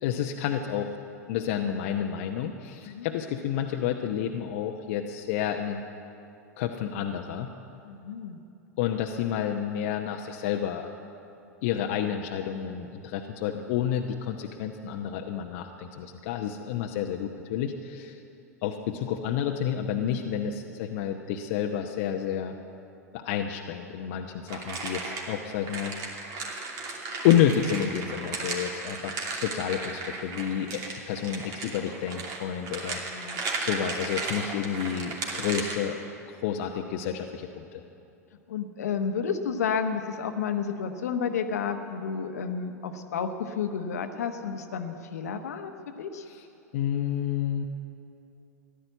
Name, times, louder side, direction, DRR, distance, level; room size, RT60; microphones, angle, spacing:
voice 1, 0.0-1.0 1.3-5.8 6.6-7.5 8.8-10.9 11.6-18.2 18.6-22.5 23.1-25.9 27.2-33.0 33.6-36.0 36.4-37.8 46.3-46.4 46.7-47.6, left 9 dB, 55° left, 2 dB, 0.9 m, -29 dB
voice 2, 7.8-8.4 19.9-20.2 33.1-33.4 38.5-46.2, left 6 dB, 70° left, 7 dB, 1.2 m, -31 dB
sound 1, 24.5-35.8, right 3 dB, 45° right, 2.7 m, -35 dB
15.0 x 11.5 x 8.0 m, 2.7 s
figure-of-eight pair, 90°, 9 cm